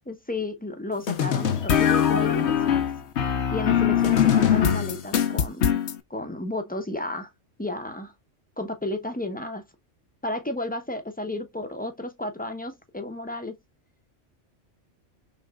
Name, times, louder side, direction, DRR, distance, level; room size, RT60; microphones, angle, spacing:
voice 1, 0.1-2.9 3.5-5.8 6.1-7.3 7.6-8.1 8.6-9.7 10.2-13.6, left 2 dB, 10° left, 0.7 m, -33 dB
sound 1, 1.1-6.0, left 9 dB, 70° left, 1.0 m, -22 dB
5.6 x 3.4 x 2.3 m
omnidirectional pair, 1.2 m